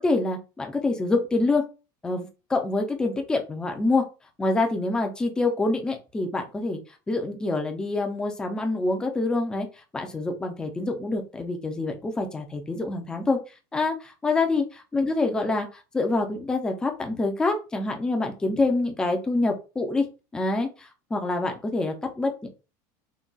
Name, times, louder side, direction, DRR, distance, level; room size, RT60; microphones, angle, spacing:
voice 1, 0.0-1.6 2.0-4.0 4.4-6.8 7.1-9.7 9.9-13.4 13.7-14.6 14.9-15.7 15.9-20.1 20.3-22.5, left 2 dB, 10° left, 4 dB, 0.4 m, -26 dB
3.8 x 2.2 x 2.3 m, 0.31 s
cardioid pair, 175°, 10 cm